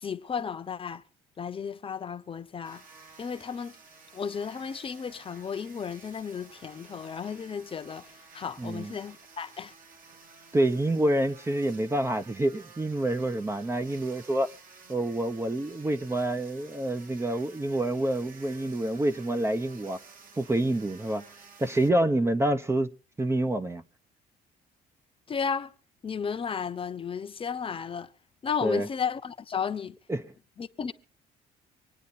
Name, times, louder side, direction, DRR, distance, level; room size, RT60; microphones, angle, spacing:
voice 1, 0.0-1.0 1.4-2.8 3.2-3.8 4.1-8.1 8.3-9.7 25.3-25.7 26.0-28.1 28.4-30.0 30.6-30.9, left 6 dB, 30° left, 1.0 m, -33 dB
sound 1, 2.6-21.9, right 4 dB, 55° right, 2.4 m, -53 dB
voice 2, 8.6-8.9 10.5-14.5 14.9-20.0 20.4-21.2 21.6-22.9 23.2-23.8 28.6-28.9 30.1-30.2, right 1 dB, 15° right, 0.8 m, -27 dB
25.0 x 9.4 x 4.2 m
cardioid pair, 110°, 17 cm